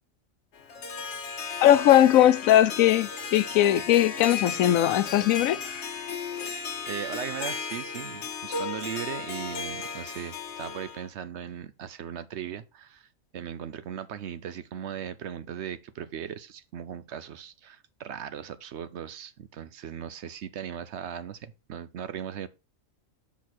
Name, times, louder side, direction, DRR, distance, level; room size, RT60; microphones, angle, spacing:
Harp, 0.5-11.1, left 5 dB, 60° left, 1.2 m, -35 dB
voice 1, 1.6-5.8, left 12 dB, 85° left, 1.0 m, -20 dB
voice 2, 6.5-13.1 13.3-22.5, right 9 dB, 65° right, 0.8 m, -38 dB
6.4 x 5.8 x 4.2 m
omnidirectional pair, 1.4 m